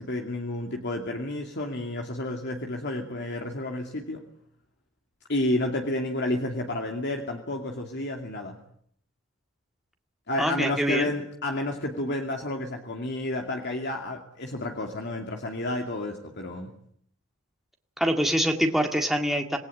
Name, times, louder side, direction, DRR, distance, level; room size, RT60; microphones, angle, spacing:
voice 1, 0.0-4.2 5.3-8.6 10.3-16.7, left 1 dB, 55° left, 2 dB, 2.5 m, -30 dB
voice 2, 10.4-11.1 18.0-19.6, equal, ahead, 3 dB, 2.0 m, -25 dB
27.0 x 19.5 x 8.8 m, 0.68 s
head